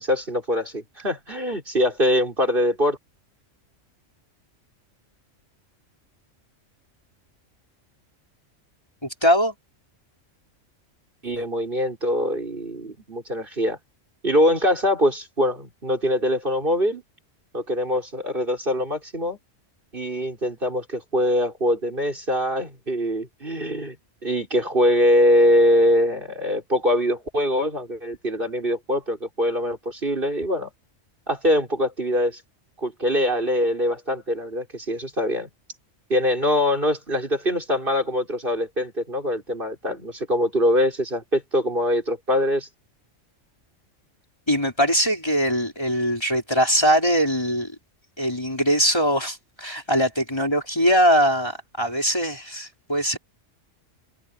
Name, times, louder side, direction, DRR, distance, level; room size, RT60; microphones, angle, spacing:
voice 1, 0.0-3.0 11.2-13.8 14.2-17.0 17.5-19.4 19.9-24.0 24.2-30.7 31.3-32.4 32.8-35.5 36.1-42.7, left 1 dB, 45° right, 5.3 m, -23 dB
voice 2, 9.2-9.5 44.5-47.7 48.2-53.2, equal, 20° left, 4.8 m, -21 dB
open air
omnidirectional pair, 1.3 m